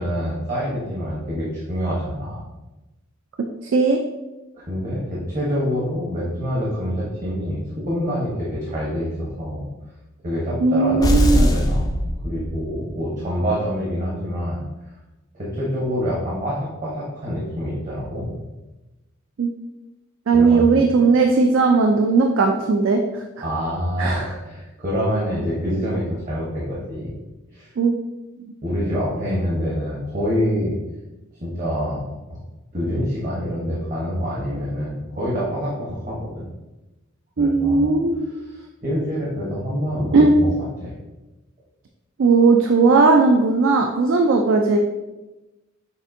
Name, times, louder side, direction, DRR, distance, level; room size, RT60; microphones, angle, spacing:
voice 1, 0.0-2.4 4.7-9.7 10.2-11.9 12.2-14.6 15.3-18.4 20.3-20.8 23.4-27.1 27.5-27.7 28.6-30.7 31.4-32.1 32.7-36.5 37.4-38.0 38.5-40.5 40.8-40.9, equal, 40° right, -6 dB, 1.0 m, -26 dB
voice 2, 3.6-4.0 10.6-11.5 19.4-19.5 20.3-23.0 24.0-24.1 27.8-27.9 37.4-38.3 40.1-40.3 42.2-44.8, right 4 dB, 70° right, 3 dB, 0.4 m, -17 dB
sound 1, 11.0-12.9, equal, 20° left, 0.3 m, -20 dB
6.6 x 2.6 x 2.6 m, 1.0 s
head